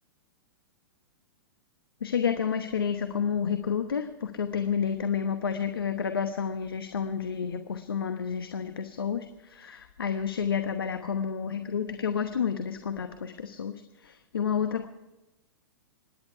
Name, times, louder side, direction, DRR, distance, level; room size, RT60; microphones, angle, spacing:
voice 1, 2.0-14.9, left 7 dB, 75° left, 8 dB, 1.0 m, -30 dB
26.0 x 10.5 x 4.7 m, 1.0 s
hypercardioid pair, 110°, 12 cm